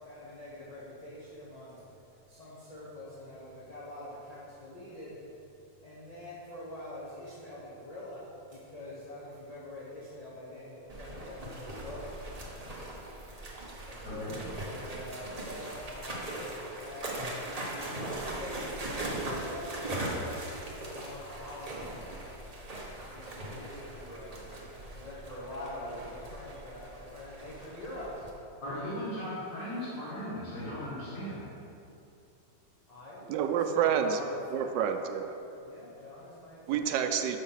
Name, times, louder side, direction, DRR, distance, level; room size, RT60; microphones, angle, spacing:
voice 1, 0.0-1.8 2.3-5.2 5.8-12.0 13.9-17.3 17.7-22.2 23.1-28.2 32.9-34.8 35.6-36.9, left 1 dB, 25° left, -9 dB, 1.2 m, -45 dB
sound 1, 10.9-28.3, right 1 dB, 30° right, 0.8 m, -40 dB
voice 2, 14.0-14.4 28.6-31.4, equal, 60° left, -10 dB, 2.5 m, -37 dB
voice 3, 33.3-34.2 34.5-35.4 36.7-37.4, right 8 dB, 80° right, 7 dB, 1.2 m, -28 dB
6.3 x 5.8 x 5.6 m, 2.8 s
omnidirectional pair, 1.9 m